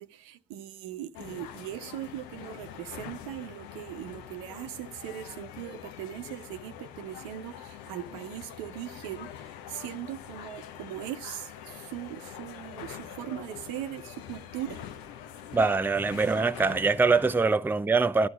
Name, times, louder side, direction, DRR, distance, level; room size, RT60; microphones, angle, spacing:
voice 1, 0.0-14.9, right 12 dB, 75° right, 0.8 m, -40 dB
sound 1, 1.1-17.4, left 9 dB, 70° left, 0.7 m, -44 dB
voice 2, 15.5-18.3, right 4 dB, 5° right, 0.5 m, -23 dB
19.0 x 12.5 x 2.3 m
hypercardioid pair, 40°, 36 cm